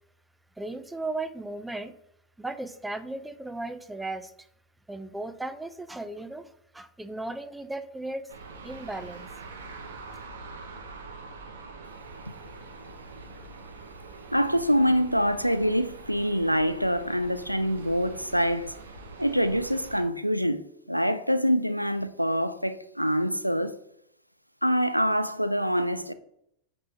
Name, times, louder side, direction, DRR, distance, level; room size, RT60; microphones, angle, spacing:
voice 1, 0.6-2.0 2.4-4.5 4.9-8.3 8.6-9.3, right 2 dB, 5° right, 0.4 m, -36 dB
sound 1, 8.3-20.0, right 3 dB, 65° right, 1.0 m, -44 dB
voice 2, 14.3-18.8 19.2-20.6 20.9-23.8 24.6-26.1, equal, 90° right, 0.3 m, -25 dB
8.4 x 4.4 x 2.8 m
figure-of-eight pair, 90°, 0 cm